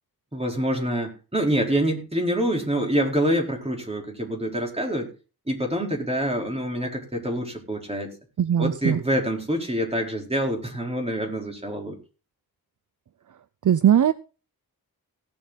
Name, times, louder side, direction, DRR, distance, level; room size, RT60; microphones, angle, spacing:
voice 1, 0.3-5.1 5.5-8.1 8.6-12.0, right 1 dB, 15° right, 1 dB, 4.4 m, -26 dB
voice 2, 8.4-9.0 13.6-14.1, right 9 dB, 55° right, 15 dB, 0.6 m, -19 dB
17.5 x 7.5 x 4.1 m, 0.34 s
wide cardioid pair, 85°, 37 cm